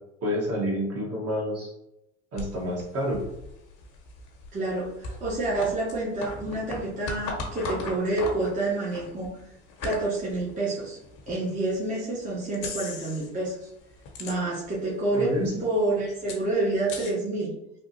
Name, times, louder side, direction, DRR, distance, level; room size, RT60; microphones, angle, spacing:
voice 1, 0.2-1.7 2.3-3.2 15.1-15.6, equal, 40° right, -3 dB, 1.4 m, -28 dB
sound 1, 2.4-11.4 11.9-12.0 12.5-13.4 13.7-14.8 15.1-15.2 15.4-17.1, left 3 dB, 60° left, 1.0 m, -38 dB
voice 2, 4.5-9.3 9.8-11.0 11.3-13.6 14.2-15.3 15.6-17.5, right 2 dB, 20° right, -6 dB, 1.0 m, -28 dB
3.4 x 2.4 x 2.8 m, 0.86 s
hypercardioid pair, 80°, 35 cm